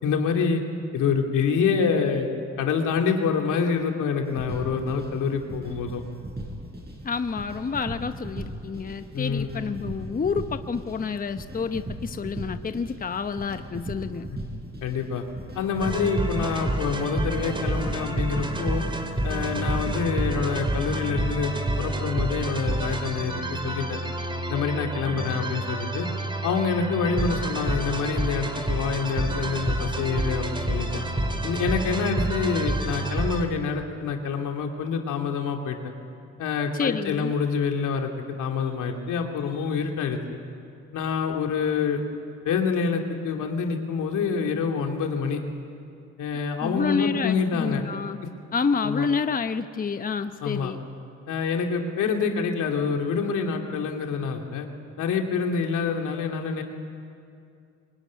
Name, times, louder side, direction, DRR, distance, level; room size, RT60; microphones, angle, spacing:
voice 1, 0.0-0.6 0.9-2.3 2.6-6.0 9.1-9.5 14.8-15.2 15.6-18.8 19.2-24.0 24.5-26.1 26.4-30.9 31.4-35.8 36.4-38.1 38.4-40.2 40.9-42.1 42.4-45.4 46.2-47.8 48.8-49.1 50.4-50.7 51.3-54.7 55.0-56.6, left 5 dB, 85° left, 2 dB, 2.8 m, -26 dB
sound 1, 4.2-20.4, right 1 dB, 35° right, 6.7 m, -38 dB
voice 2, 7.0-14.3 36.7-37.3 46.6-48.2 48.5-50.8, left 5 dB, 30° left, 9 dB, 0.9 m, -29 dB
sound 2, 15.8-33.4, right 1 dB, 15° right, 2.7 m, -28 dB
23.5 x 21.0 x 9.6 m, 2.4 s
cardioid pair, 90°, 30 cm